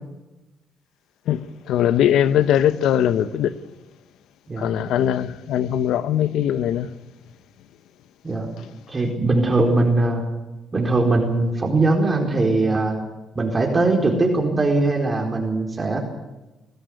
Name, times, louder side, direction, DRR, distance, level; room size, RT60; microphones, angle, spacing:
voice 1, 1.7-3.5 4.6-6.9, left 10 dB, 80° left, 0.8 m, -20 dB
voice 2, 8.9-10.3 10.7-13.0 13.3-16.0, right 2 dB, 25° right, 4.3 m, -20 dB
21.5 x 14.5 x 9.4 m
cardioid pair, 90°, 0 cm